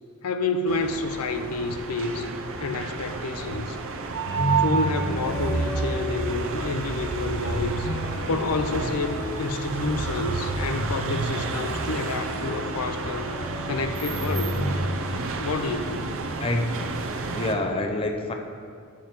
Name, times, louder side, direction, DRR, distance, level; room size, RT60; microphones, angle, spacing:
voice 1, 0.2-2.3 2.6-3.8 4.6-7.9 8.3-13.3 13.7-14.5 15.4-16.1, left 3 dB, 75° left, 8 dB, 0.5 m, -29 dB
sound 1, 0.7-17.5, right 4 dB, 60° right, 0.6 m, -30 dB
sound 2, 4.2-6.9 7.4-10.1 10.7-14.8, left 1 dB, 60° left, 1.0 m, -33 dB
voice 2, 16.4-16.8 17.3-18.3, left 2 dB, 25° left, 3 dB, 0.5 m, -27 dB
9.1 x 7.1 x 4.4 m, 2.3 s
head